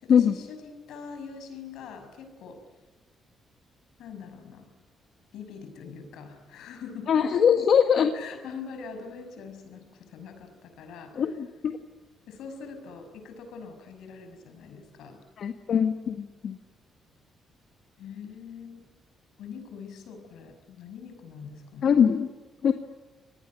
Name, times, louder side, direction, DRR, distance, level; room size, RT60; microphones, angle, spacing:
voice 1, 0.0-2.6 4.0-4.7 5.3-7.1 7.9-11.3 12.3-15.2 18.0-18.9 19.4-21.9, left 5 dB, 80° left, 7 dB, 6.2 m, -43 dB
voice 2, 7.1-8.1 11.2-11.8 15.4-16.6 21.8-22.3 22.6-22.7, left 7 dB, 60° left, 6 dB, 1.7 m, -22 dB
27.0 x 19.5 x 9.8 m, 1.2 s
cardioid pair, 90°, 0 cm